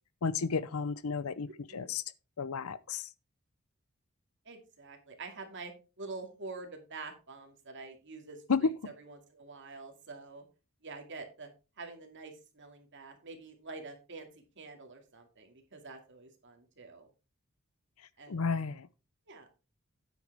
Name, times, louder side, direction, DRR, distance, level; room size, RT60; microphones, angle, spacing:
voice 1, 0.2-2.0 2.4-3.0 8.5-8.6 18.3-18.9, left 5 dB, 75° left, 0.6 m, -32 dB
voice 2, 4.5-5.7 6.0-10.4 10.8-11.5 11.8-14.3 14.6-17.1 18.2-18.6 19.3-19.5, right 3 dB, 55° right, 2.3 m, -47 dB
9.1 x 8.1 x 3.4 m
head